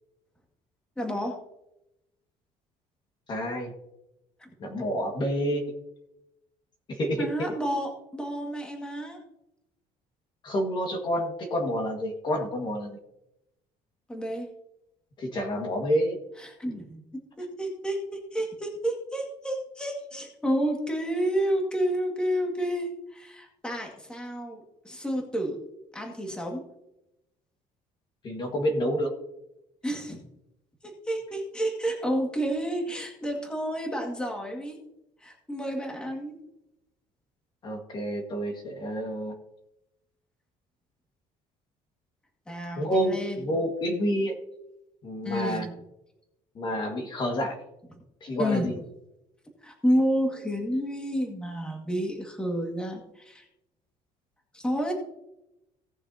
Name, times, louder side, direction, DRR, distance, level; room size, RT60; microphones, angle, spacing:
voice 1, 1.0-1.4 4.4-4.5 7.2-9.2 14.1-14.5 16.4-17.1 17.4-25.6 25.9-26.6 29.8-30.2 30.8-34.8 35.2-36.4 42.5-43.4 45.2-45.7 48.4-48.8 49.6-53.5 54.5-54.9, equal, 5° left, 1 dB, 2.0 m, -30 dB
voice 2, 3.3-3.7 4.6-5.6 6.9-7.5 10.4-13.0 15.2-16.2 28.2-29.1 37.6-39.3 42.8-44.3 45.0-45.7 46.6-47.6 48.2-48.7, equal, 35° left, 2 dB, 1.7 m, -28 dB
18.0 x 6.6 x 2.8 m, 0.87 s
cardioid pair, 160°, 14 cm